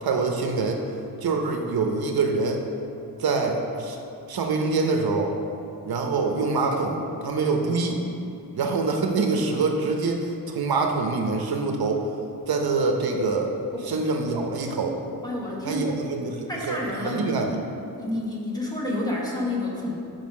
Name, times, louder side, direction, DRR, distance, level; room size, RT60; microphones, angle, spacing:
voice 1, 0.0-0.8 1.2-2.6 3.2-4.0 4.3-5.3 5.8-8.0 8.5-12.1 12.5-13.5 13.8-15.0 15.6-17.6, right 3 dB, 70° right, 2 dB, 0.8 m, -25 dB
voice 2, 15.2-16.1 16.5-17.6 17.9-20.0, left 1 dB, 10° left, -4 dB, 1.1 m, -30 dB
5.6 x 5.2 x 6.3 m, 2.7 s
wide cardioid pair, 170°, 38 cm